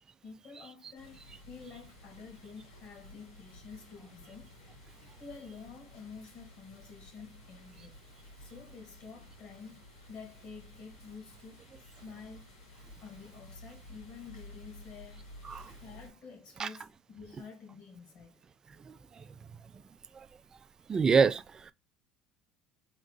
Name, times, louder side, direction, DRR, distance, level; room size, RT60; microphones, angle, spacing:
voice 1, 0.2-4.9 5.2-8.0 8.4-9.8 10.1-11.6 12.0-12.5 13.0-18.4, left 5 dB, 55° left, 1.9 m, -49 dB
sound 1, 0.9-16.1, left 1 dB, 90° left, 2.3 m, -53 dB
voice 2, 18.8-19.2 20.1-20.3 20.9-21.7, right 5 dB, 30° right, 0.4 m, -27 dB
3.6 x 2.7 x 3.9 m
hypercardioid pair, 70°, 2 cm